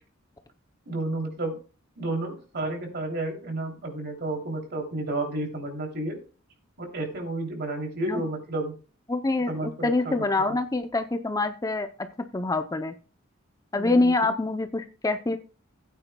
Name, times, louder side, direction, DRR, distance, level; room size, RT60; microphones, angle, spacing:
voice 1, 0.9-1.6 2.0-6.2 6.8-8.7 9.3-10.5 13.7-14.3, right 2 dB, 55° right, 2 dB, 2.9 m, -31 dB
voice 2, 9.1-12.9 13.7-15.4, left 2 dB, 15° left, 8 dB, 0.5 m, -26 dB
16.0 x 9.0 x 2.2 m, 0.36 s
head